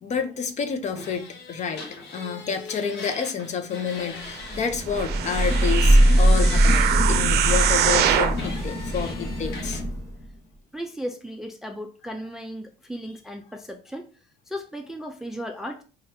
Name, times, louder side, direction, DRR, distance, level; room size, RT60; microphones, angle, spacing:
voice 1, 0.0-1.9 2.1-9.8, left 6 dB, 45° left, 0.6 m, -29 dB
sound 1, 1.0-4.6 4.9-7.0 7.6-9.8, left 4 dB, 80° left, 0.9 m, -39 dB
Thunder / Rain, 4.5-10.3, right 1 dB, 15° left, 1.0 m, -21 dB
sound 2, 4.9-8.4 9.0-9.1, right 10 dB, 75° right, 0.5 m, -24 dB
voice 2, 10.7-14.1 14.5-15.8, equal, ahead, 0.3 m, -35 dB
4.3 x 2.4 x 3.3 m
cardioid pair, 110°, 17 cm